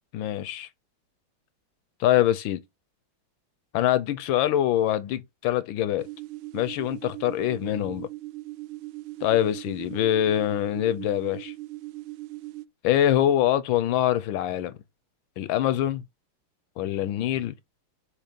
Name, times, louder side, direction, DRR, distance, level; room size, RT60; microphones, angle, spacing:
voice 1, 0.1-0.7 2.0-2.6 3.7-6.1 6.5-8.1 9.2-11.5 12.8-14.8 15.4-16.0 16.8-17.5, left 12 dB, 75° left, 1.2 m, -24 dB
sound 1, 6.0-12.6, right 19 dB, 75° right, 1.0 m, -39 dB
6.6 x 2.9 x 5.1 m
omnidirectional pair, 2.4 m